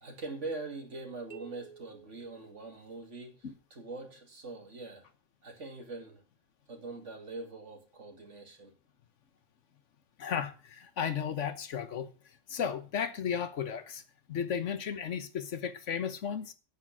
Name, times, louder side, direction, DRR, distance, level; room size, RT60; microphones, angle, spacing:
voice 1, 0.0-5.1 5.4-6.2 6.7-8.7, right 3 dB, 70° right, 2.7 m, -43 dB
sound 1, 1.3-3.2, right 7 dB, 45° right, 0.6 m, -53 dB
voice 2, 10.2-12.1 12.5-14.0 14.3-16.5, left 7 dB, 75° left, 1.3 m, -34 dB
8.8 x 8.5 x 6.0 m
omnidirectional pair, 1.3 m